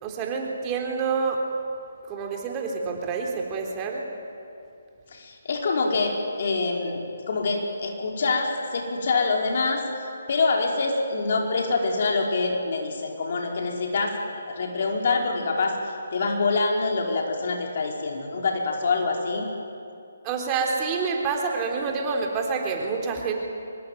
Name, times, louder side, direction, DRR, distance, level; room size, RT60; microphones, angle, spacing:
voice 1, 0.0-1.4 2.1-4.1 20.2-23.3, right 5 dB, 25° right, 1 dB, 3.7 m, -27 dB
voice 2, 5.1-7.0 7.3-9.8 10.3-19.5, left 3 dB, 50° left, 1 dB, 4.8 m, -25 dB
24.5 x 21.5 x 9.3 m, 2.6 s
figure-of-eight pair, 145°, 0 cm